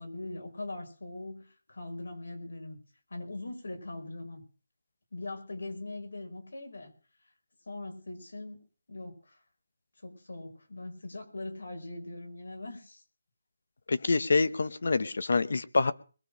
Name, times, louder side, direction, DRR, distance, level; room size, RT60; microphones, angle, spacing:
voice 1, 0.0-2.8 3.1-4.4 5.1-6.9 7.7-8.6 8.9-9.4 10.0-13.0, left 2 dB, 80° left, 4 dB, 5.2 m, -41 dB
voice 2, 13.9-15.9, left 3 dB, 60° left, 14 dB, 1.0 m, -26 dB
21.5 x 7.3 x 6.3 m, 0.37 s
hypercardioid pair, 175°, 0 cm